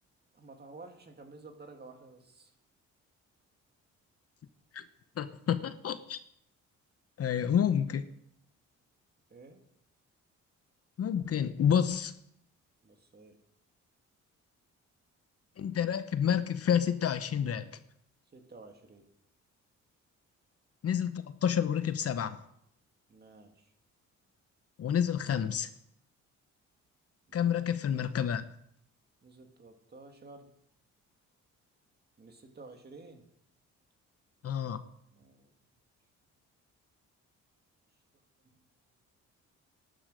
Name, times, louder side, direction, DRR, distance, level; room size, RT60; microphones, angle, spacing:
voice 1, 0.3-2.5 9.3-9.6 12.8-13.4 18.3-19.1 23.1-23.7 27.3-27.7 29.2-30.5 32.2-33.2 35.1-35.5 38.4-38.6, right 3 dB, 35° right, 2.4 m, -52 dB
voice 2, 5.2-6.2 7.2-8.1 11.0-12.1 15.6-17.7 20.8-22.4 24.8-25.7 27.3-28.4 34.4-34.8, left 8 dB, 50° left, 0.9 m, -29 dB
12.0 x 9.9 x 6.4 m
cardioid pair, 90°, 30 cm